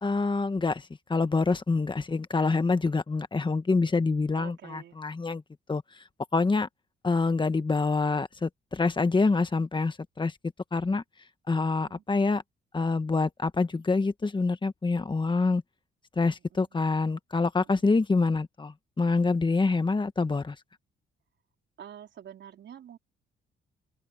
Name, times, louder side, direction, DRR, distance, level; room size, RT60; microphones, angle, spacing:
voice 1, 0.0-5.4 5.7-5.8 6.3-6.7 7.0-10.3 10.7-11.0 11.5-12.4 12.7-15.6 16.2-20.5, left 3 dB, 25° left, 1.6 m, -26 dB
voice 2, 4.4-5.0 11.7-12.0 16.3-16.9 17.6-17.8 21.8-23.0, right 9 dB, 65° right, 4.4 m, -48 dB
open air
cardioid pair, 90°, 20 cm